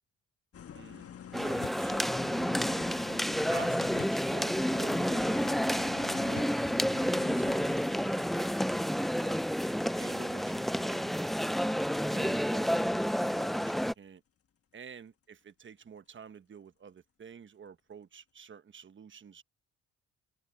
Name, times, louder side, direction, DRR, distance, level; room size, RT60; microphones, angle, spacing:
sound 1, 0.5-10.4 10.7-10.8, left 9 dB, 50° left, 1.5 m, -46 dB
voice 1, 0.7-2.3 3.5-9.5 10.0-11.2 12.1-14.2 14.7-19.4, right 7 dB, 40° right, 1.3 m, -50 dB
sound 2, 1.3-13.9, equal, ahead, 0.4 m, -30 dB
open air
cardioid pair, 90°, 30 cm